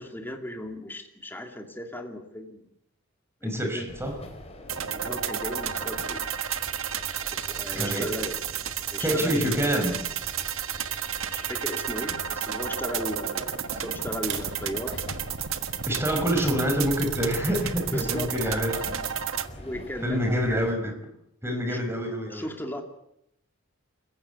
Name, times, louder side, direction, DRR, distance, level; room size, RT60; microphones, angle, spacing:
voice 1, 0.0-2.7 3.4-3.9 4.9-6.2 7.3-8.3 8.9-10.1 10.7-11.0 11.3-15.0 17.9-18.3 19.6-20.2 21.7-21.8 22.3-22.8, equal, 10° left, 3 dB, 2.7 m, -36 dB
voice 2, 3.4-4.2 7.7-8.1 9.0-9.9 13.7-13.8 14.9-15.0 15.9-18.9 20.0-21.0 21.4-22.5, equal, 10° right, 4 dB, 5.5 m, -27 dB
sound 1, 3.9-20.7, left 1 dB, 30° left, 4.4 m, -44 dB
sound 2, 4.7-19.5, right 9 dB, 80° right, 1.5 m, -32 dB
sound 3, 14.2-19.2, right 4 dB, 60° right, 4.7 m, -42 dB
29.0 x 15.5 x 8.3 m, 0.79 s
head